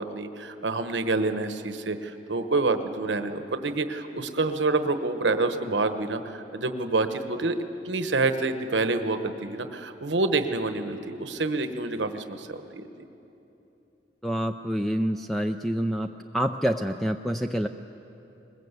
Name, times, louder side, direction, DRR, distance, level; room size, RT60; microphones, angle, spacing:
voice 1, 0.0-7.6 7.8-12.8, right 3 dB, 80° right, 9 dB, 1.1 m, -27 dB
voice 2, 14.2-16.1 16.3-17.7, equal, ahead, 6 dB, 0.4 m, -27 dB
21.5 x 20.5 x 8.2 m, 3.0 s
head